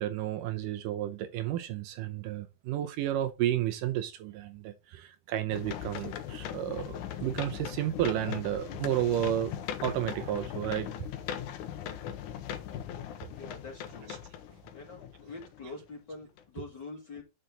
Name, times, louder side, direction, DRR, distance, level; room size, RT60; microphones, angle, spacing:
voice 1, 0.0-9.5 9.8-10.9 14.1-14.2 16.6-16.7, right 12 dB, 80° right, 2.2 m, -32 dB
sound 1, 5.5-15.8 16.4-16.5, left 10 dB, 70° left, 2.2 m, -39 dB
voice 2, 13.3-14.2 14.7-17.2, left 3 dB, 35° left, 2.1 m, -45 dB
8.8 x 6.6 x 3.8 m
omnidirectional pair, 4.0 m